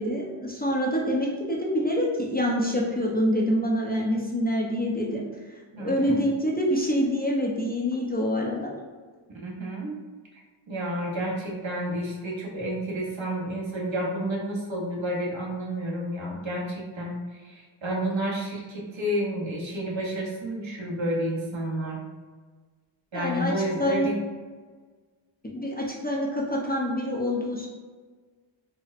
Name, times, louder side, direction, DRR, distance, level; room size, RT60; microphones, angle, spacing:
voice 1, 0.0-5.2 5.8-8.7 23.1-24.1 25.5-27.7, equal, 20° left, -3 dB, 0.5 m, -26 dB
voice 2, 5.7-6.3 9.3-10.0 10.7-22.0 23.1-24.2, right 1 dB, 65° right, -2 dB, 0.9 m, -30 dB
4.1 x 2.1 x 2.4 m, 1.4 s
wide cardioid pair, 65°, 49 cm